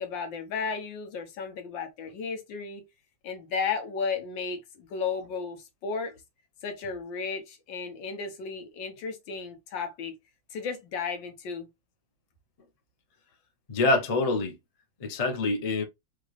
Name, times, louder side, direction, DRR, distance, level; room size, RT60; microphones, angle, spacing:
voice 1, 0.0-2.8 3.2-6.1 6.6-10.2 10.5-11.7, left 5 dB, 85° left, 1.7 m, -34 dB
voice 2, 13.7-14.6 15.0-15.8, left 3 dB, 45° left, 0.4 m, -25 dB
5.1 x 2.5 x 3.1 m
omnidirectional pair, 2.0 m